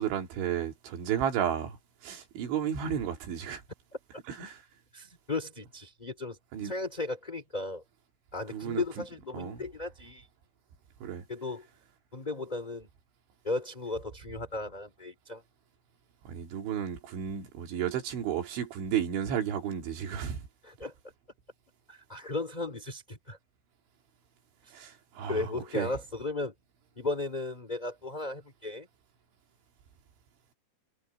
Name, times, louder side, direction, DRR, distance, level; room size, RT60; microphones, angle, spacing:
voice 1, 0.0-3.6 4.3-4.6 6.5-6.7 8.5-9.1 9.3-9.6 11.0-11.3 16.3-20.5 24.7-25.9, right 9 dB, 80° right, 5.2 m, -33 dB
voice 2, 4.9-6.4 6.6-7.8 8.3-10.3 11.3-11.7 12.1-12.9 13.4-15.4 20.6-20.9 21.9-23.4 25.3-26.5 27.0-28.9, left 3 dB, 10° left, 2.9 m, -35 dB
omnidirectional pair, 5.3 m